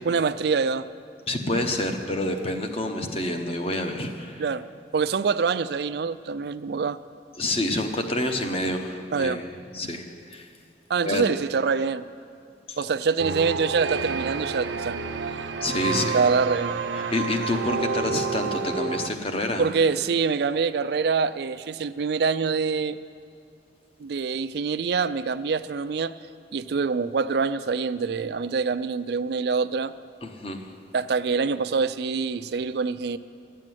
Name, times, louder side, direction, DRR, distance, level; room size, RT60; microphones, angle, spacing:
voice 1, 0.0-0.9 4.4-4.6 4.9-7.0 9.1-9.4 10.9-12.0 12.8-15.0 16.1-16.7 19.6-23.0 24.0-26.2 26.5-29.9 30.9-33.2, right 5 dB, 60° right, 13 dB, 0.4 m, -25 dB
voice 2, 1.3-4.4 7.4-9.5 9.7-10.5 11.1-11.3 12.7-12.8 15.6-16.2 17.1-19.7 30.2-30.6, left 1 dB, 30° left, 5 dB, 0.9 m, -28 dB
sound 1, 13.2-19.1, right 4 dB, 85° right, 0.7 m, -29 dB
12.5 x 7.5 x 9.1 m, 2.3 s
head